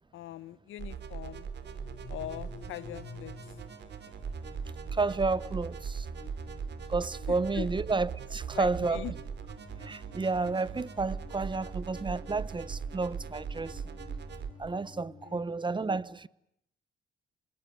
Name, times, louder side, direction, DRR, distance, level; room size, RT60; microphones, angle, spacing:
voice 1, 0.1-1.5 2.1-3.3 4.0-4.3 7.3-7.7 8.5-9.1 15.3-15.5, left 13 dB, 80° left, 1.3 m, -41 dB
sound 1, 0.8-14.5, right 6 dB, 60° right, 3.2 m, -40 dB
sound 2, 1.6-15.3, left 4 dB, 35° left, 2.8 m, -51 dB
voice 2, 4.9-6.1 6.9-9.1 9.8-13.9 14.6-16.3, right 3 dB, 25° right, 1.0 m, -31 dB
26.0 x 21.0 x 9.3 m
cardioid pair, 90°, 20 cm